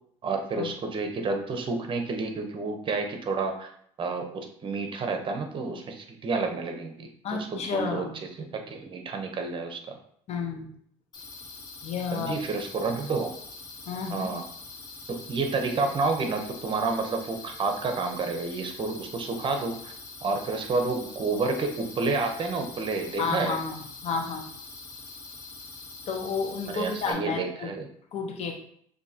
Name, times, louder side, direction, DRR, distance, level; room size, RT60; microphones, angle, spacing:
voice 1, 0.2-3.7 4.0-8.0 8.4-10.0 12.1-13.3 14.1-14.4 15.1-19.9 20.2-23.6 26.7-27.9, right 3 dB, 40° right, 4 dB, 0.9 m, -30 dB
voice 2, 7.2-8.2 10.3-10.7 11.8-12.3 13.9-14.3 23.2-24.5 26.1-27.7 28.1-28.5, left 5 dB, 55° left, 2 dB, 1.0 m, -31 dB
sound 1, 11.1-27.1, left 3 dB, 30° left, 1.7 m, -44 dB
6.2 x 2.8 x 2.8 m, 0.65 s
supercardioid pair, 90°, 13 cm